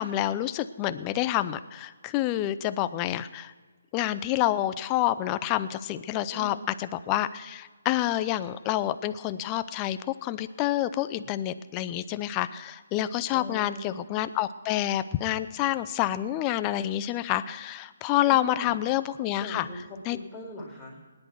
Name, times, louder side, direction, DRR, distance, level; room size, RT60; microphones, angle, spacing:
voice 1, 0.0-3.5 3.9-19.7 20.1-20.2, left 13 dB, 20° left, 13 dB, 0.6 m, -28 dB
voice 2, 6.3-6.7 13.3-13.9 18.3-18.7 19.4-21.0, left 1 dB, 5° left, -9 dB, 4.0 m, -40 dB
19.0 x 10.5 x 4.6 m, 1.4 s
hypercardioid pair, 155°, 0 cm